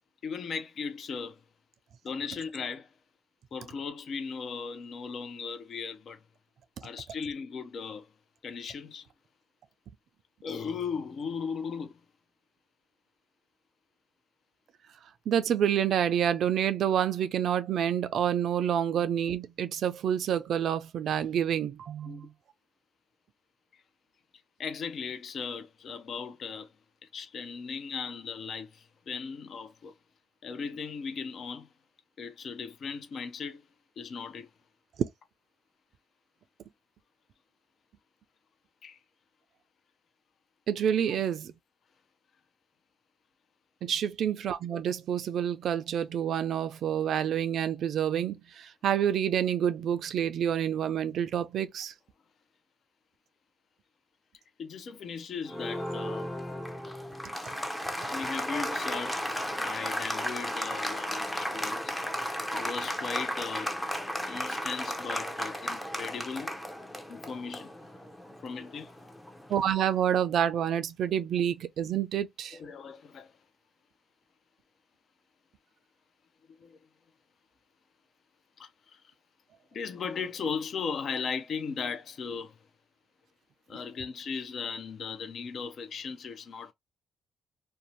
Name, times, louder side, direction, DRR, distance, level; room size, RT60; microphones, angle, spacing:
voice 1, 0.2-1.4 2.0-2.9 3.5-6.2 6.8-8.1 8.4-9.1 10.4-12.0 22.1-22.3 24.6-26.7 27.0-29.9 30.4-31.7 32.2-33.7 34.0-34.5 38.8-39.0 54.6-56.3 58.0-62.0 62.5-63.8 64.3-66.6 67.1-67.8 68.4-68.9 72.5-73.3 76.6-76.8 78.6-79.0 79.7-82.6 83.7-86.7, left 5 dB, 55° left, 0.5 m, -37 dB
voice 2, 15.3-22.3 40.7-41.5 43.8-51.9 69.5-72.6, right 9 dB, 65° right, 0.4 m, -28 dB
Applause, 55.5-69.8, equal, 5° left, 0.5 m, -35 dB
2.7 x 2.1 x 2.9 m
cardioid pair, 90°, 0 cm